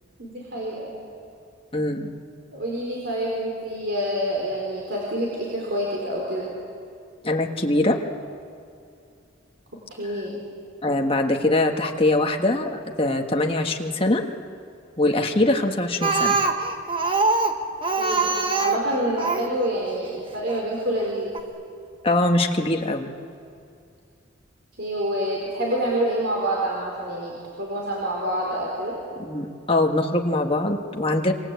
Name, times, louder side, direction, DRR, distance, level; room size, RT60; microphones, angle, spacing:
voice 1, 0.2-0.9 2.5-6.5 10.0-10.4 18.0-18.3 18.6-21.3 24.8-29.0, right 1 dB, 55° right, -3 dB, 4.6 m, -27 dB
voice 2, 1.7-2.1 7.2-8.0 10.8-14.2 15.0-16.4 22.0-23.1 29.2-31.3, left 2 dB, 25° left, 3 dB, 1.6 m, -22 dB
Speech, 16.0-19.5 20.5-20.6 21.0-21.1 21.3-21.4, right 3 dB, 25° right, 1.3 m, -23 dB
26.5 x 25.0 x 8.4 m, 2.4 s
head